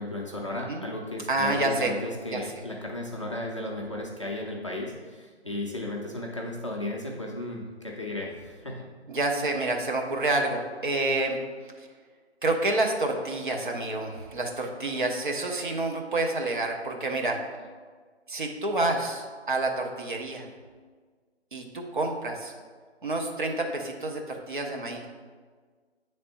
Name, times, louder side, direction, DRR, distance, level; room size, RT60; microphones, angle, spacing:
voice 1, 0.0-8.9, left 1 dB, 30° left, -2 dB, 0.5 m, -35 dB
voice 2, 1.3-1.9 2.3-2.4 9.1-11.4 11.8-11.9 12.4-17.4 18.3-20.5 21.5-22.5 23.0-25.1, right 2 dB, 45° right, 2 dB, 0.8 m, -28 dB
7.6 x 3.4 x 4.1 m, 1.5 s
figure-of-eight pair, 150°, 34 cm